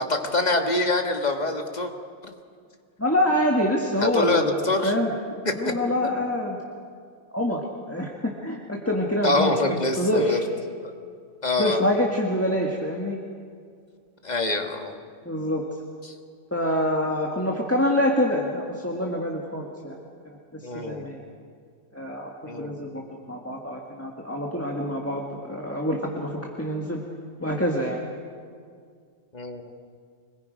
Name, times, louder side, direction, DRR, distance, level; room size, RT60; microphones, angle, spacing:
voice 1, 0.1-1.9 2.2-2.3 4.0-4.9 9.2-10.4 10.8-10.9 11.4-11.8 14.2-14.9 16.0-16.1 20.6-21.1 22.4-22.7 29.3-29.7, left 2 dB, 35° left, 4 dB, 1.8 m, -25 dB
voice 2, 3.0-5.1 5.6-6.6 7.3-10.4 11.6-13.2 15.2-15.6 16.5-20.0 20.5-21.2 21.9-27.0 27.4-28.0, left 1 dB, 10° left, -1 dB, 1.5 m, -26 dB
25.0 x 21.5 x 5.2 m, 2.1 s
omnidirectional pair, 1.3 m